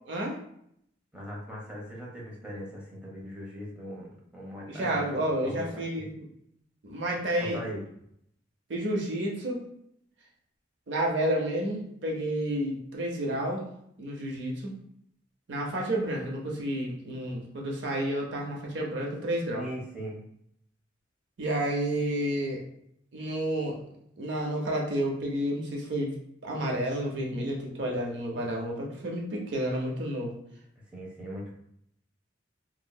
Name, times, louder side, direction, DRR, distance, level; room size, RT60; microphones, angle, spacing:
voice 1, 0.1-0.4 4.7-6.3 6.8-7.6 8.7-9.6 10.9-13.7 14.0-14.7 15.5-19.6 21.4-22.6 23.1-23.8 24.2-26.1 26.4-30.3, right 1 dB, 65° right, -1 dB, 0.6 m, -30 dB
voice 2, 1.1-6.1 7.4-7.8 19.6-20.2 30.9-31.5, equal, 5° right, -5 dB, 0.7 m, -40 dB
3.0 x 2.7 x 2.2 m, 0.72 s
head